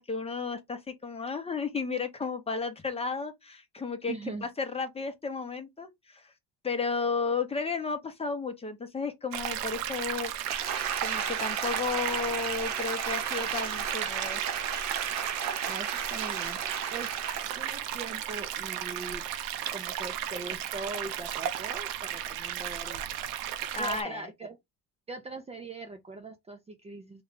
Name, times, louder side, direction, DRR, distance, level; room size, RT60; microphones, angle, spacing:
voice 1, 0.0-4.1 4.4-6.3 6.6-10.5 11.0-14.4 23.7-24.3, left 4 dB, 15° left, 0.7 m, -33 dB
voice 2, 4.1-4.5 15.7-16.6 16.9-17.1 17.6-19.2 19.7-23.1 23.8-24.6 25.1-27.2, right 3 dB, 20° right, 0.5 m, -41 dB
sound 1, 9.3-24.0, right 11 dB, 80° right, 0.7 m, -35 dB
Applause, 10.4-17.6 18.0-18.1, right 7 dB, 50° right, 0.9 m, -34 dB
3.1 x 2.3 x 3.7 m
cardioid pair, 120°, 35 cm